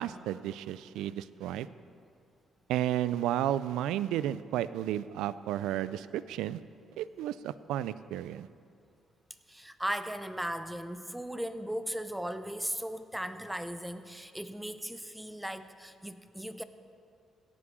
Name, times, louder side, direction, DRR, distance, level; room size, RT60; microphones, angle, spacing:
voice 1, 0.0-1.7 2.7-6.6 7.0-8.5, right 12 dB, 85° right, 16 dB, 0.3 m, -32 dB
voice 2, 9.5-16.6, equal, 5° right, 11 dB, 0.6 m, -37 dB
17.0 x 6.1 x 6.2 m, 2.5 s
cardioid pair, 75°, 0 cm